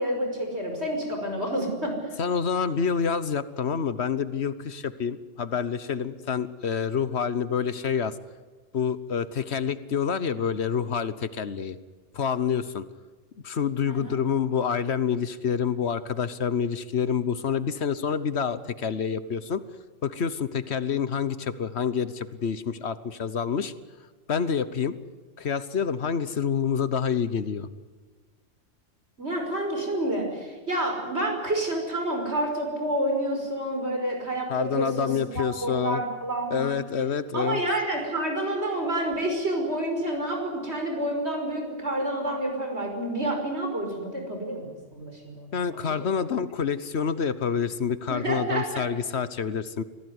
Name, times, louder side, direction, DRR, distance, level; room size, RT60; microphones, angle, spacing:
voice 1, 0.0-2.1 13.9-14.2 29.2-35.1 35.4-36.8 37.3-45.8 48.1-48.9, right 1 dB, 60° right, 3 dB, 5.8 m, -29 dB
voice 2, 2.2-8.2 8.7-11.8 12.1-12.8 13.4-19.6 20.0-23.7 24.3-25.0 25.4-27.7 34.5-36.0 36.5-37.6 45.5-49.8, left 7 dB, 60° left, 14 dB, 1.3 m, -27 dB
24.5 x 17.0 x 9.6 m, 1.4 s
omnidirectional pair, 1.3 m